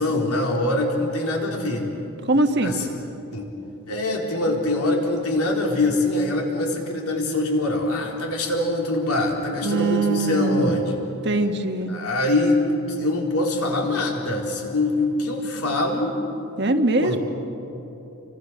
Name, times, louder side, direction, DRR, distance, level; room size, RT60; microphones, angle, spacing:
voice 1, 0.0-1.8 2.6-2.9 3.3-3.5 3.9-11.0 11.9-16.2 17.0-17.2, left 2 dB, 90° left, 0 dB, 4.2 m, -23 dB
voice 2, 2.2-2.7 9.6-10.8 11.2-11.9 16.6-17.2, right 2 dB, 50° right, 6 dB, 1.5 m, -22 dB
30.0 x 25.0 x 6.5 m, 3.0 s
head